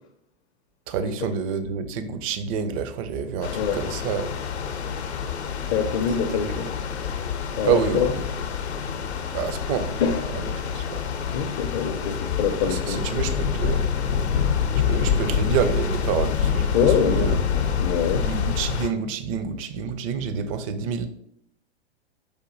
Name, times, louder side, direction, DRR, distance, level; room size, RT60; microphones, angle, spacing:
voice 1, 0.9-4.3 6.3-6.5 7.6-8.2 9.3-10.0 10.3-11.0 12.6-13.8 14.6-17.4 18.1-21.1, right 7 dB, 35° right, 10 dB, 0.4 m, -28 dB
sound 1, 3.4-18.9, left 7 dB, 80° left, 0.7 m, -26 dB
voice 2, 5.7-6.7 7.6-8.1 10.0-10.2 11.3-13.0 16.7-17.3 17.8-18.3, left 7 dB, 35° left, 4 dB, 0.5 m, -24 dB
4.9 x 2.6 x 3.8 m, 0.71 s
figure-of-eight pair, 105°, 32 cm